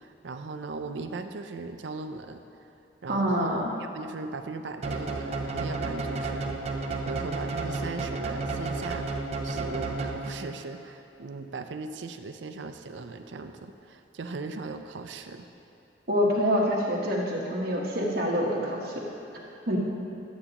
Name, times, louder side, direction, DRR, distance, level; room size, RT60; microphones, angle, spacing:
voice 1, 0.0-2.7 3.0-9.1 9.4-15.5, right 3 dB, 85° right, 7 dB, 0.5 m, -38 dB
voice 2, 3.1-3.7 16.1-19.1 19.7-19.8, equal, 55° right, -3 dB, 1.4 m, -26 dB
sound 1, 4.8-10.6, right 3 dB, 35° right, 0.6 m, -32 dB
12.0 x 8.1 x 3.0 m, 2.9 s
head